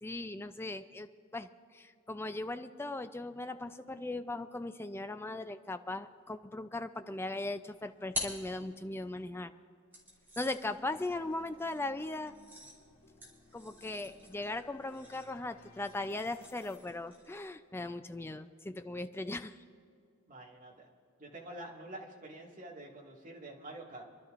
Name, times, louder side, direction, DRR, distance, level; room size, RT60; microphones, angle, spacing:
voice 1, 0.0-1.5 1.7-9.5 10.4-12.3 13.5-19.5, left 2 dB, 10° left, 10 dB, 0.4 m, -38 dB
sound 1, 7.5-9.2 9.9-17.5, left 1 dB, 10° right, 2.8 m, -47 dB
sound 2, 10.7-16.8, left 3 dB, 85° left, 2.4 m, -60 dB
voice 2, 11.0-11.3 20.3-20.9 21.2-24.1, right 1 dB, 40° right, -2 dB, 1.9 m, -47 dB
29.0 x 12.0 x 2.5 m, 2.3 s
head